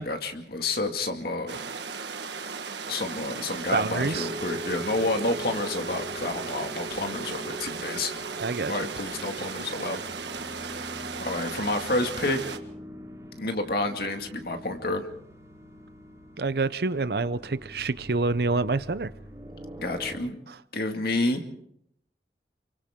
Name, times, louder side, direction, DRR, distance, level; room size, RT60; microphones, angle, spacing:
voice 1, 0.0-1.6 2.9-8.1 8.7-10.0 11.2-12.4 13.4-15.1 19.8-20.4 20.7-21.4, left 2 dB, 60° left, 5 dB, 2.2 m, -29 dB
sound 1, 1.5-12.6, right 5 dB, 85° right, 1.5 m, -36 dB
voice 2, 3.7-4.3 8.4-8.7 16.4-19.1, right 3 dB, 60° right, 15 dB, 0.7 m, -27 dB
sound 2, 4.0-20.2, equal, 20° right, 3.3 m, -43 dB
29.5 x 23.5 x 3.7 m, 0.73 s
head